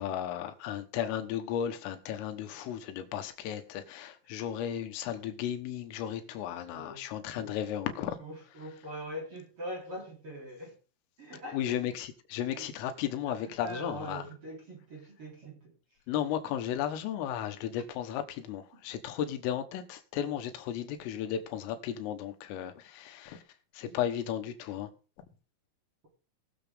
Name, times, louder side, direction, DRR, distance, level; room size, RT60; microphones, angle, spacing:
voice 1, 0.0-8.2 11.5-14.2 16.1-23.4 23.8-24.9, left 10 dB, 85° left, 3.8 m, -34 dB
voice 2, 6.7-7.0 7.3-7.6 8.2-10.8 11.2-11.8 12.5-15.8 18.7-18.8 23.9-24.0, equal, 30° right, 3.4 m, -43 dB
20.5 x 7.0 x 3.5 m
omnidirectional pair, 5.8 m